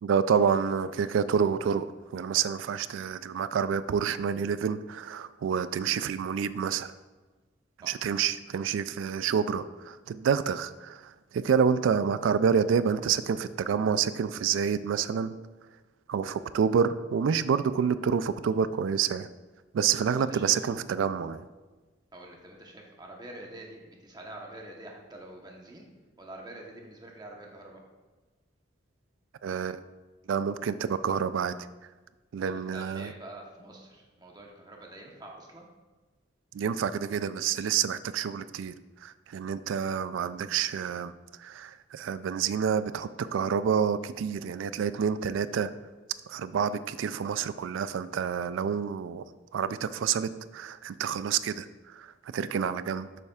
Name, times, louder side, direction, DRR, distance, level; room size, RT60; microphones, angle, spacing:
voice 1, 0.0-6.9 7.8-15.3 16.1-19.3 19.7-21.5 29.4-29.8 30.3-31.7 32.3-33.1 36.5-38.7 39.0-45.7 46.3-49.3 49.5-53.1, right 7 dB, 75° right, 14 dB, 0.3 m, -28 dB
voice 2, 20.1-20.5 22.1-25.8 26.2-27.8 32.4-35.7, right 1 dB, 20° right, 0 dB, 1.0 m, -46 dB
8.1 x 7.0 x 2.4 m, 1.2 s
head